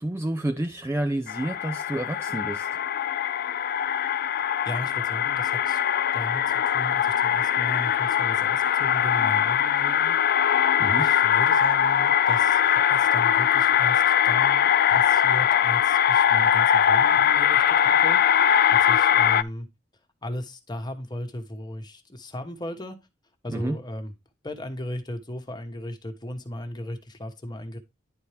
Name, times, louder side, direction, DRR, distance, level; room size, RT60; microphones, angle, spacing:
voice 1, 0.0-2.7 10.8-11.1 23.5-23.8, right 1 dB, 15° right, 0.4 m, -29 dB
sound 1, 1.3-19.4, left 9 dB, 50° left, 0.4 m, -21 dB
voice 2, 4.7-5.8 6.1-10.2 11.0-19.7 20.2-23.0 23.4-24.1 24.4-27.8, left 1 dB, 20° left, 1.2 m, -36 dB
10.5 x 4.4 x 3.4 m
head